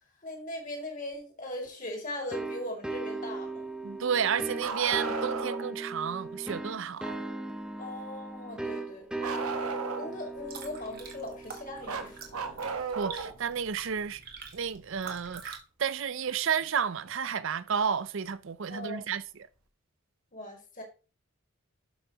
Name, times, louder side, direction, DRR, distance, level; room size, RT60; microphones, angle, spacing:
voice 1, 0.2-3.7 7.8-9.4 10.0-12.2 18.7-19.1 20.3-20.8, left 1 dB, 35° left, 2.4 m, -39 dB
sound 1, 2.3-12.8, right 3 dB, 5° right, 0.7 m, -38 dB
voice 2, 3.8-7.2 13.0-14.2 14.5-19.2, right 7 dB, 60° right, 0.5 m, -31 dB
Bark, 4.6-5.7 9.2-10.3 11.9-13.4 15.0-15.1 17.1-17.2 18.3-18.4, right 4 dB, 85° right, 1.2 m, -34 dB
sound 2, 10.2-15.6, right 5 dB, 45° right, 1.6 m, -47 dB
12.5 x 5.6 x 2.9 m
head